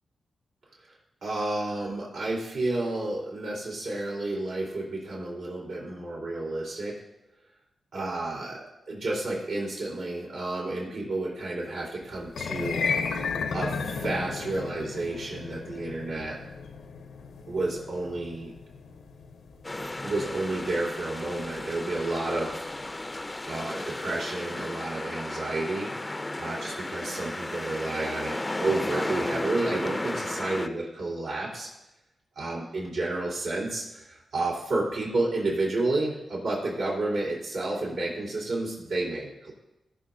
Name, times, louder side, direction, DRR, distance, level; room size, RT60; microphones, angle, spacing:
voice 1, 1.2-7.0 7.9-8.6 8.9-12.8 13.5-16.4 17.5-18.5 20.0-22.7 23.5-25.9 26.4-31.7 32.4-39.5, right 2 dB, 85° right, -5 dB, 3.9 m, -31 dB
sound 1, 12.3-22.6, left 5 dB, 90° left, 0.8 m, -35 dB
sound 2, 19.6-30.7, left 2 dB, 20° left, 0.5 m, -34 dB
20.5 x 6.9 x 2.7 m, 0.93 s
cardioid pair, 70°, 0 cm